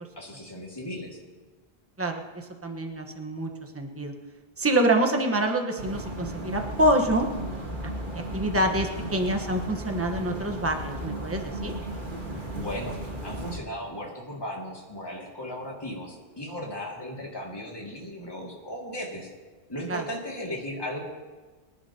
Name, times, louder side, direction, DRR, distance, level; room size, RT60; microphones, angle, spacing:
voice 1, 0.2-1.2 12.5-19.3 19.7-21.0, equal, 20° left, -3 dB, 2.4 m, -36 dB
voice 2, 2.6-4.1 4.6-7.3 8.3-11.7 19.9-20.0, right 1 dB, 15° right, 3 dB, 1.2 m, -26 dB
sound 1, 5.8-13.6, right 1 dB, 50° right, 1.9 m, -35 dB
26.0 x 11.0 x 2.9 m, 1.3 s
omnidirectional pair, 1.1 m